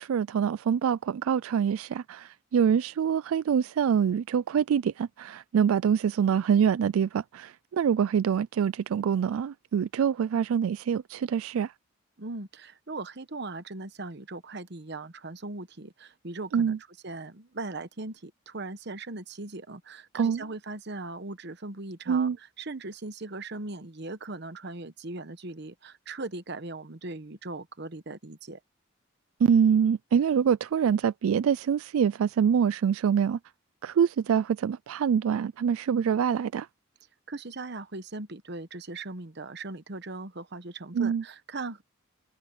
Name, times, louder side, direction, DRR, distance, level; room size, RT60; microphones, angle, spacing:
voice 1, 0.0-11.7 16.5-16.8 20.2-20.4 22.1-22.4 29.4-33.4 33.8-36.7 40.9-41.2, right 7 dB, 80° right, 0.3 m, -25 dB
voice 2, 12.2-16.8 17.0-28.6 37.3-41.8, right 2 dB, 55° right, 1.0 m, -39 dB
head